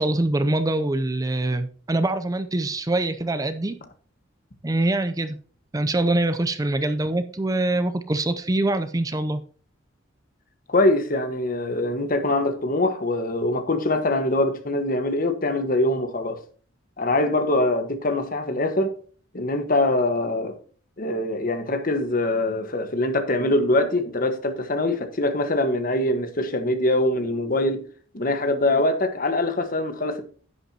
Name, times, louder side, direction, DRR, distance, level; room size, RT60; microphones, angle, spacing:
voice 1, 0.0-3.8 4.6-5.4 5.7-9.4, right 2 dB, 20° right, 0.5 m, -24 dB
voice 2, 10.7-16.4 17.0-18.9 19.3-20.5 21.0-27.8 28.1-30.2, left 1 dB, 45° left, 1.3 m, -23 dB
10.5 x 8.9 x 2.8 m
head